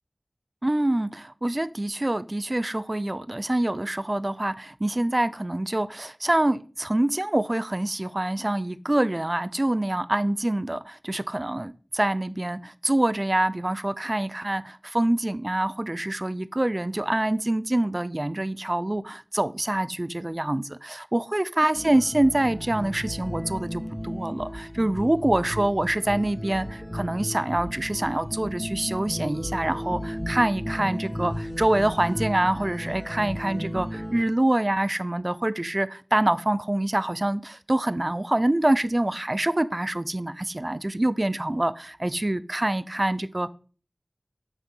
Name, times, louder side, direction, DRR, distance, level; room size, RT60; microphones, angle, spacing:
voice 1, 0.6-43.5, right 1 dB, 35° right, 15 dB, 0.6 m, -25 dB
sound 1, 21.7-34.2, equal, 15° left, 2.6 m, -34 dB
sound 2, 23.4-24.0 24.4-25.0 25.8-26.7 27.6-28.6 28.9-29.6 31.3-32.1, right 2 dB, 55° right, 1.2 m, -44 dB
8.2 x 6.1 x 5.6 m, 0.39 s
wide cardioid pair, 45°, 0 cm